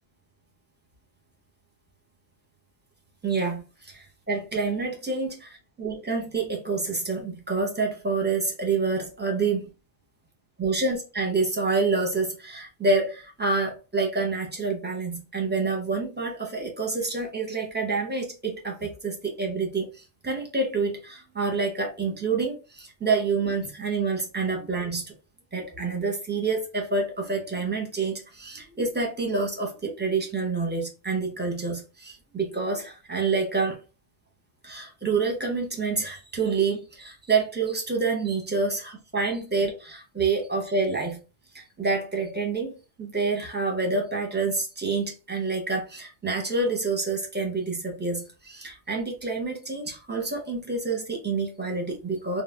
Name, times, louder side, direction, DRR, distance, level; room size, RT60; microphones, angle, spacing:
voice 1, 3.2-9.7 10.6-19.9 20.2-25.1 25.5-33.8 34.6-41.2 41.5-42.7 43.0-52.4, right 4 dB, 10° right, 0.6 m, -27 dB
2.5 x 2.1 x 3.2 m
omnidirectional pair, 1.2 m